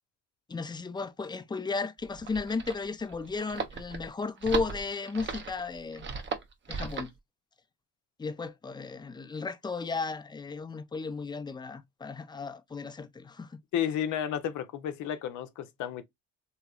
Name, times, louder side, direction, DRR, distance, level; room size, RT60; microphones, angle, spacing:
voice 1, 0.5-6.1 6.7-7.1 8.2-13.6, left 4 dB, 15° left, 0.4 m, -34 dB
sound 1, 2.0-7.2, right 5 dB, 40° right, 0.7 m, -37 dB
voice 2, 13.7-16.0, left 9 dB, 80° left, 0.6 m, -32 dB
3.0 x 2.8 x 2.3 m
cardioid pair, 90°, 30 cm